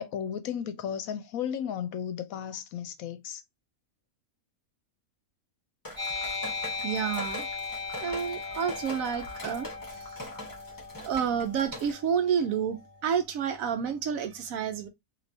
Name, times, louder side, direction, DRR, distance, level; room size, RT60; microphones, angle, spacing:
voice 1, 0.0-3.4, left 8 dB, 75° left, 1.0 m, -34 dB
sound 1, 5.8-11.9, left 1 dB, 15° left, 1.1 m, -42 dB
sound 2, 6.0-13.0, left 4 dB, 30° right, 1.4 m, -38 dB
voice 2, 6.8-7.5 8.0-10.2 11.0-14.9, right 7 dB, 75° right, 1.0 m, -30 dB
3.2 x 2.8 x 2.6 m
omnidirectional pair, 1.5 m